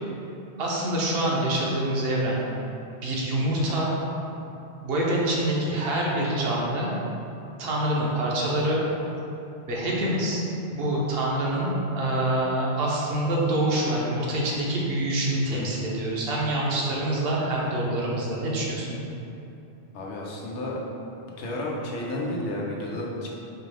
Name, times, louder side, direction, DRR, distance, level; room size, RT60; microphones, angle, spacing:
voice 1, 0.6-2.4 3.0-3.9 4.8-6.9 7.6-8.8 9.7-10.4 10.7-19.0, right 1 dB, 60° right, -4 dB, 0.9 m, -26 dB
voice 2, 19.9-20.8 21.4-23.3, left 1 dB, 90° left, -3 dB, 1.0 m, -32 dB
4.4 x 2.4 x 3.2 m, 2.9 s
omnidirectional pair, 1.2 m